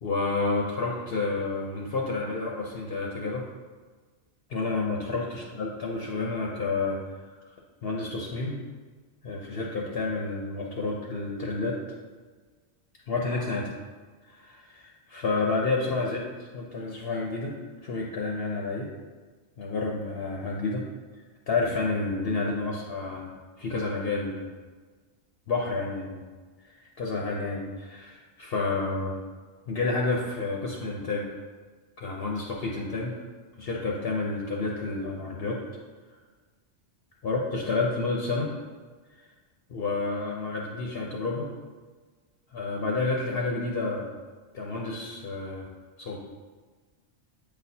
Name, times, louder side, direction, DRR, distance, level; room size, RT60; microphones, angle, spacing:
voice 1, 0.0-3.5 4.5-7.3 7.8-8.6 9.2-11.8 13.1-13.6 14.2-17.6 17.8-18.9 19.6-20.8 21.5-24.5 25.5-26.2 26.6-29.2 29.7-31.3 32.0-33.1 33.6-35.6 37.2-38.5 39.2-39.3 39.7-41.5 42.5-44.1 44.5-45.7 46.0-46.2, left 3 dB, 60° left, -1 dB, 0.9 m, -30 dB
8.4 x 4.2 x 2.7 m, 1.4 s
omnidirectional pair, 1.2 m